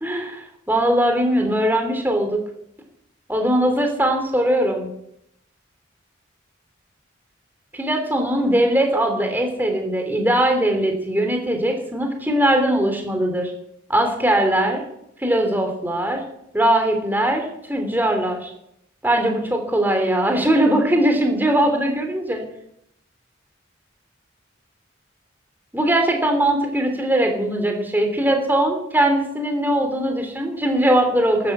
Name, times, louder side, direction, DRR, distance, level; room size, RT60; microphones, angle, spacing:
voice 1, 0.0-2.4 3.3-4.9 7.7-13.5 13.9-14.8 15.2-16.2 16.5-18.5 19.0-22.4 25.7-31.5, right 1 dB, 10° right, 3 dB, 3.1 m, -20 dB
12.5 x 11.0 x 7.8 m, 0.76 s
head